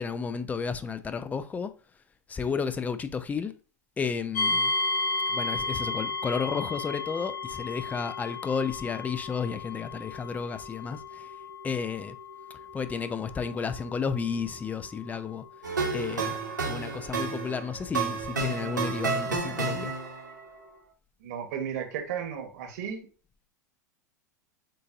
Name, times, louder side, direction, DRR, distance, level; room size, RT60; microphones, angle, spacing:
voice 1, 0.0-1.7 2.3-3.5 4.0-4.7 5.3-11.4 11.6-12.2 12.7-15.4 15.9-16.3 16.6-19.9, left 5 dB, 15° left, 0.5 m, -32 dB
sound 1, 4.3-19.2, left 3 dB, 65° left, 0.9 m, -35 dB
sound 2, 15.6-20.3, right 4 dB, 90° right, 1.3 m, -31 dB
voice 2, 21.2-23.1, right 8 dB, 60° right, 1.2 m, -34 dB
7.5 x 2.6 x 2.5 m
figure-of-eight pair, 90°, 10 cm